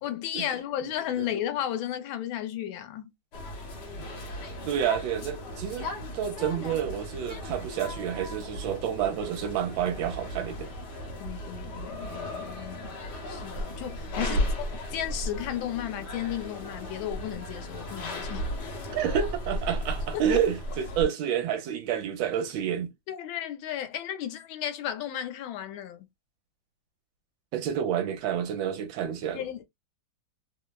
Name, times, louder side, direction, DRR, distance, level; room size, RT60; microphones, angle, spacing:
voice 1, 0.0-3.1 11.2-13.0 13.3-18.6 20.3-20.4 23.1-26.1 29.3-29.6, left 11 dB, 80° left, 1.3 m, -34 dB
sound 1, 3.3-21.0, left 1 dB, 60° left, 1.4 m, -35 dB
voice 2, 4.7-5.9 6.1-10.7 14.2-14.5 18.9-22.9 27.5-29.4, right 9 dB, 75° right, 1.3 m, -29 dB
3.3 x 2.1 x 2.2 m
omnidirectional pair, 2.2 m